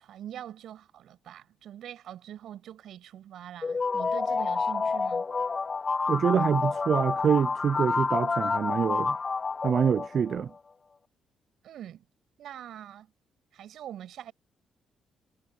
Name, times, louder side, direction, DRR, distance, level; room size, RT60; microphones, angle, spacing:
voice 1, 0.0-5.3 11.6-12.0 12.4-13.1 13.5-14.3, right 11 dB, 75° right, 7.6 m, -43 dB
sound 1, 3.6-10.4, left 4 dB, 30° left, 0.4 m, -29 dB
voice 2, 6.1-9.2 9.6-10.5, right 7 dB, 55° right, 0.5 m, -26 dB
cardioid pair, 90°, 0 cm